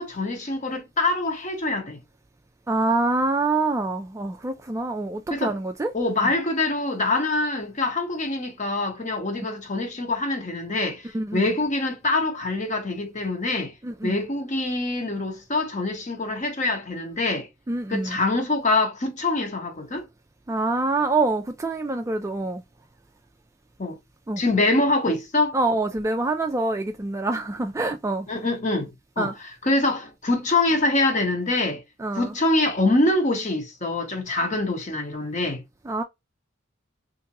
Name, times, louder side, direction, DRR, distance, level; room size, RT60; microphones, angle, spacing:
voice 1, 0.0-2.0 5.3-5.6 5.9-13.7 14.0-17.5 17.9-20.1 23.8-24.0 24.4-25.5 28.3-31.8 32.2-35.6, left 2 dB, 35° left, 0.9 m, -25 dB
voice 2, 2.7-5.9 11.1-11.5 13.8-14.2 17.7-18.2 20.5-22.6 24.3-24.4 25.5-28.3 29.2-29.3 32.0-32.3 35.9-36.0, right 2 dB, 15° right, 0.3 m, -25 dB
3.4 x 2.6 x 2.9 m
head